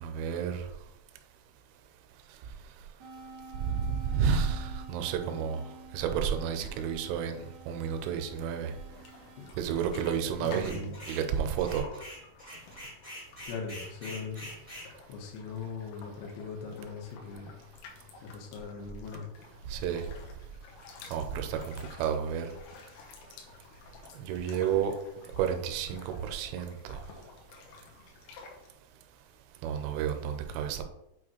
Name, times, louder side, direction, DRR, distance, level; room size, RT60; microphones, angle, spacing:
voice 1, 0.0-0.6 3.6-5.6 5.9-8.7 9.6-11.8 19.7-20.0 21.1-21.7 22.0-22.5 24.2-24.9 25.4-27.0 29.6-30.8, right 7 dB, 85° right, 6 dB, 3.3 m, -31 dB
sound 1, 3.0-9.5, right 3 dB, 60° right, 1.2 m, -50 dB
sound 2, 9.0-28.7, left 4 dB, 90° left, 3.9 m, -51 dB
voice 2, 10.4-11.0 13.4-14.5 14.8-17.6 18.2-19.3, left 5 dB, 75° left, -1 dB, 3.3 m, -40 dB
sound 3, 10.5-11.3 11.6-14.9, equal, 15° left, 1.2 m, -45 dB
8.9 x 4.9 x 3.2 m, 0.86 s
omnidirectional pair, 5.7 m